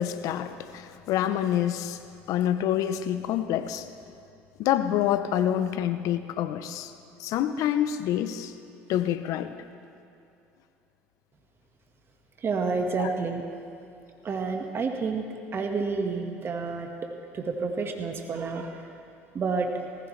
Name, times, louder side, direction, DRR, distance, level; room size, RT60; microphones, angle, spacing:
voice 1, 0.0-2.0 2.3-3.9 4.6-6.9 7.2-8.5 8.9-9.5 13.0-13.1, left 11 dB, 65° left, 11 dB, 0.8 m, -27 dB
voice 2, 12.4-13.4 14.2-16.9 17.3-18.9 19.3-19.8, right 4 dB, 40° right, 3 dB, 1.6 m, -29 dB
18.5 x 15.5 x 3.3 m, 2.6 s
hypercardioid pair, 70°, 6 cm